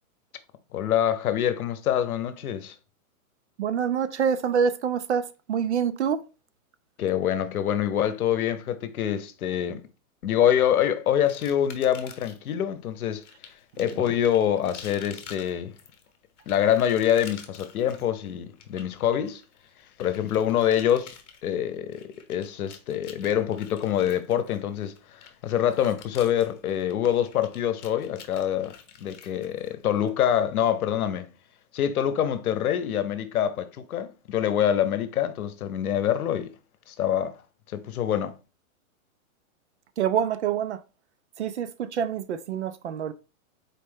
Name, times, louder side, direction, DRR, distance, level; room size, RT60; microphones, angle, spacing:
voice 1, 0.7-2.7 7.0-9.8 10.2-13.2 13.8-15.8 16.5-19.4 20.0-21.1 21.4-31.3 31.7-36.5 36.9-37.4 37.7-38.4, left 10 dB, 85° left, 0.8 m, -25 dB
voice 2, 3.6-6.2 13.8-14.1 40.0-40.8 41.4-43.1, right 7 dB, 55° right, 0.5 m, -26 dB
sound 1, 11.3-12.5 13.2-30.1, left 7 dB, 55° left, 1.0 m, -48 dB
4.2 x 3.2 x 3.4 m
hypercardioid pair, 175°, 43 cm